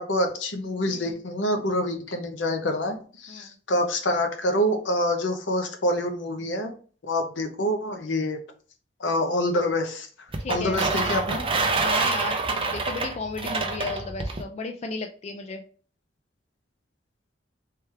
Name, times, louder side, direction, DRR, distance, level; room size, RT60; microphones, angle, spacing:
voice 1, 0.0-6.7 7.1-8.4 9.0-10.1 10.5-11.4, left 1 dB, 75° left, 5 dB, 0.8 m, -26 dB
voice 2, 0.9-1.2 3.3-3.6 10.4-10.8 11.8-15.6, left 3 dB, 35° left, 5 dB, 0.4 m, -34 dB
sound 1, 10.3-14.4, right 3 dB, 30° right, 0.6 m, -26 dB
3.4 x 3.3 x 3.2 m, 0.41 s
head